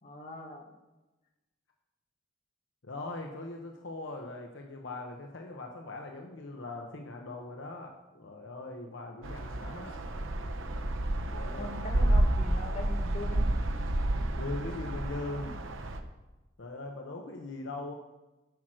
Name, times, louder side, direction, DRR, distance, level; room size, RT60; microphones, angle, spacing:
voice 1, 0.0-0.6 11.5-13.5, left 2 dB, 40° left, 1 dB, 1.7 m, -41 dB
voice 2, 2.8-10.1 11.3-12.0 14.4-15.7 16.6-17.9, left 2 dB, 70° left, 2 dB, 1.0 m, -41 dB
sound 1, 9.2-16.0, right 1 dB, 85° right, 0.9 m, -30 dB
10.5 x 6.0 x 6.4 m, 1.1 s
head